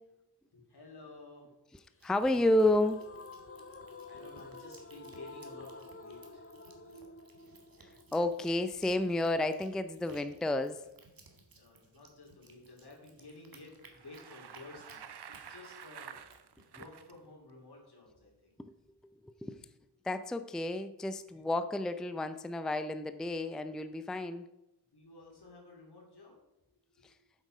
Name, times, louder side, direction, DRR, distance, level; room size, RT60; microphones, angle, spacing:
voice 1, 0.5-1.8 2.3-2.8 3.6-8.1 11.3-16.2 16.7-18.6 19.4-19.6 21.3-21.4 24.9-26.4 26.9-27.3, left 2 dB, 75° left, -1 dB, 3.2 m, -54 dB
voice 2, 2.0-3.0 8.1-10.8 19.2-19.6 20.0-24.4 27.0-27.1, left 1 dB, ahead, 10 dB, 0.4 m, -31 dB
sound 1, 2.0-17.2, right 3 dB, 60° right, 1.7 m, -61 dB
sound 2, 2.3-9.3, left 3 dB, 35° left, 0.8 m, -50 dB
Bicycle, 13.8-17.1, right 8 dB, 75° right, 0.7 m, -50 dB
8.0 x 7.7 x 5.4 m, 0.91 s
wide cardioid pair, 85°, 40 cm